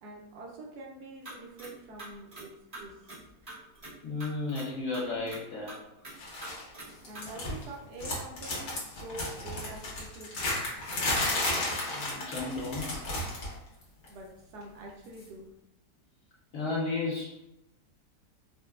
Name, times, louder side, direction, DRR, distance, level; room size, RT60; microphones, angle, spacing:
voice 1, 0.0-3.0 7.0-10.5 14.1-15.5, right 2 dB, 75° right, -1 dB, 1.1 m, -46 dB
sound 1, 1.2-1.7 2.0-2.4 2.7-3.9 4.2-4.7 4.9-5.4 5.7-6.1 6.4-6.9 7.1-7.2, right 2 dB, 30° right, 0.9 m, -44 dB
voice 2, 4.0-5.8 11.9-13.1 16.5-17.4, left 3 dB, 65° left, -4 dB, 1.0 m, -33 dB
sound 2, 6.2-6.6 6.9-7.7 8.0-13.6 13.8-14.1 15.2-15.3, left 2 dB, 85° left, 1.6 m, -33 dB
4.3 x 2.2 x 2.3 m, 0.88 s
omnidirectional pair, 1.8 m